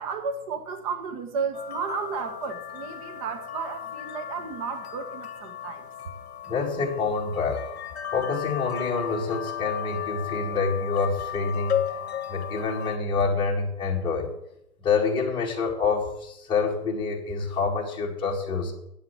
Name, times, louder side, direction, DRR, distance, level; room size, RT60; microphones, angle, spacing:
voice 1, 0.0-5.9, right 5 dB, 25° right, 7 dB, 1.1 m, -33 dB
sound 1, 1.5-13.0, left 9 dB, 45° left, 1.3 m, -35 dB
voice 2, 6.5-7.6 8.1-11.8 12.3-14.3 14.8-18.7, left 4 dB, 10° left, -2 dB, 2.0 m, -27 dB
8.7 x 7.5 x 8.6 m, 0.81 s
figure-of-eight pair, 140°, 45 cm